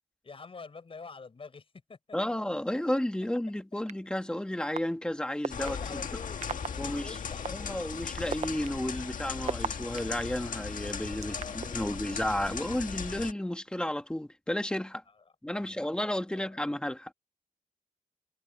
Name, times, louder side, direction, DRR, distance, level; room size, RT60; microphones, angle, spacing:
voice 1, 0.2-2.2 5.6-7.9 11.2-12.3 15.5-16.6, left 4 dB, 45° left, 6.5 m, -47 dB
voice 2, 2.1-6.0 6.8-7.2 7.5-15.0 15.4-17.1, left 1 dB, 5° left, 1.5 m, -32 dB
sound 1, 3.9-4.0 4.8-4.9 5.4-5.7 6.4-6.7 7.4-7.5 8.2-10.2 10.9-11.7, right 6 dB, 60° right, 0.7 m, -32 dB
sound 2, 5.5-13.3, left 6 dB, 80° left, 1.6 m, -38 dB
wide cardioid pair, 155°, 13 cm